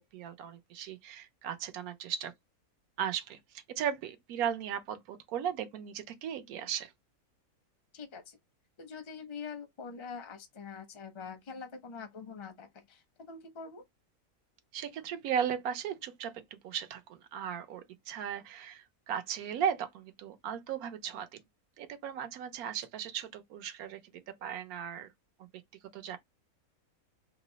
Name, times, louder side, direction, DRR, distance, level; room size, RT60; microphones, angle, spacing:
voice 1, 0.0-2.3 3.0-6.9 14.7-21.4 21.8-25.1 25.9-26.2, right 8 dB, 80° right, 1.1 m, -36 dB
voice 2, 7.9-8.4 8.8-13.8, left 5 dB, 40° left, 0.4 m, -44 dB
3.0 x 2.0 x 3.8 m
omnidirectional pair, 1.5 m